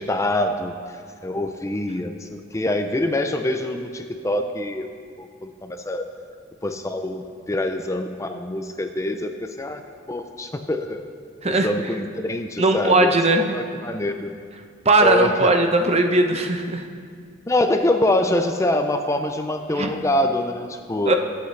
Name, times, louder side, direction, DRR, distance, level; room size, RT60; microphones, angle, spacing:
voice 1, 0.0-4.9 5.2-6.0 6.6-9.8 10.1-11.0 11.4-13.1 13.5-14.3 15.0-15.5 17.5-21.1, left 1 dB, 15° left, 6 dB, 0.5 m, -25 dB
voice 2, 12.6-13.5 14.8-16.9 19.8-19.9 21.1-21.2, right 2 dB, 35° right, 5 dB, 0.8 m, -18 dB
22.0 x 8.1 x 3.3 m, 2.1 s
head